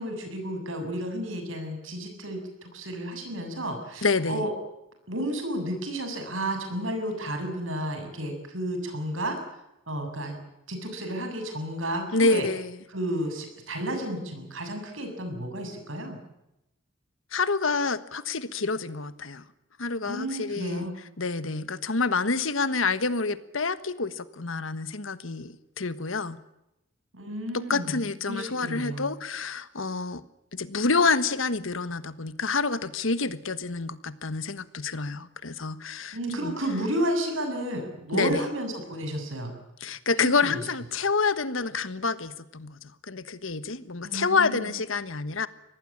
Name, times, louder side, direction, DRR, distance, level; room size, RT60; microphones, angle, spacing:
voice 1, 0.0-4.5 5.1-9.4 9.9-10.4 10.7-12.5 12.9-16.2 20.1-20.9 27.1-29.1 36.1-39.5 40.2-40.7 44.0-44.7, right 1 dB, 75° right, 5 dB, 7.2 m, -32 dB
voice 2, 4.0-4.4 12.1-12.8 17.3-19.4 19.8-20.9 21.2-26.4 27.5-30.2 30.5-36.5 38.1-38.5 39.8-45.5, left 4 dB, 75° left, 14 dB, 1.4 m, -28 dB
25.0 x 18.5 x 8.7 m, 0.87 s
head